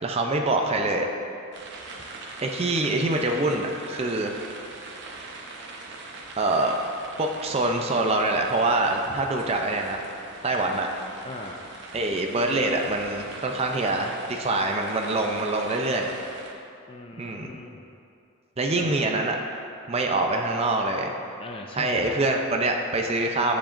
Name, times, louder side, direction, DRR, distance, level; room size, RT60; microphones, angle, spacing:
voice 1, 0.0-1.1 2.4-4.4 6.4-6.7 7.2-10.1 10.4-10.9 11.9-16.1 17.2-17.5 18.6-19.6 19.9-21.1 21.7-23.6, right 2 dB, 30° right, 2 dB, 0.5 m, -25 dB
sound 1, 1.5-16.5, right 2 dB, 55° right, 0.8 m, -42 dB
voice 2, 11.2-11.6 16.9-17.8 18.8-19.1 21.4-22.1, left 2 dB, 25° left, 2 dB, 0.4 m, -39 dB
10.0 x 7.1 x 2.6 m, 2.5 s
head